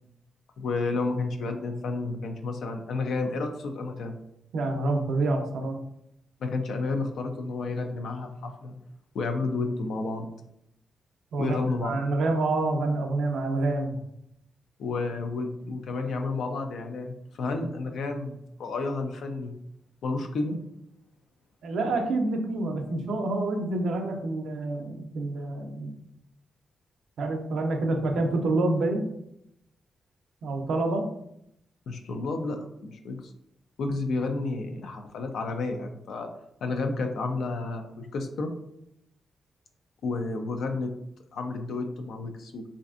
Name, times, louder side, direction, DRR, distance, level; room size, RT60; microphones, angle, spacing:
voice 1, 0.6-4.1 6.4-8.7 9.1-10.3 11.4-11.9 14.8-19.5 20.0-20.6 31.9-33.3 33.8-36.3 36.6-38.5 40.0-40.9 41.3-42.7, left 3 dB, 80° left, 5 dB, 0.4 m, -31 dB
voice 2, 4.5-5.8 11.3-14.0 21.6-26.0 27.2-29.1 30.4-31.1, right 2 dB, 85° right, 4 dB, 0.5 m, -27 dB
3.2 x 2.5 x 2.4 m, 0.78 s
cardioid pair, 85°, 0 cm